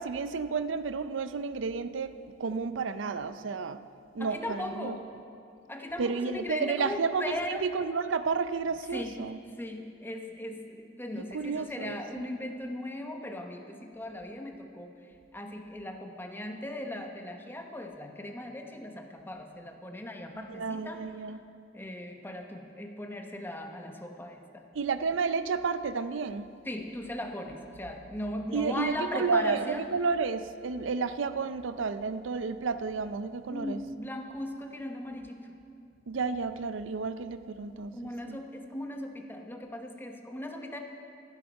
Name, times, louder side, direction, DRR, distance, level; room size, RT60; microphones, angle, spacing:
voice 1, 0.0-3.8 4.1-5.0 6.0-9.4 11.2-12.3 20.3-21.4 24.7-26.5 28.5-33.8 36.1-38.4, right 4 dB, 90° right, 12 dB, 0.5 m, -31 dB
voice 2, 4.2-5.0 5.7-7.6 8.9-9.2 9.6-21.0 21.7-24.6 26.6-29.9 33.5-35.5 37.9-40.8, left 1 dB, 10° left, 3 dB, 0.9 m, -38 dB
13.0 x 11.5 x 5.3 m, 2.5 s
head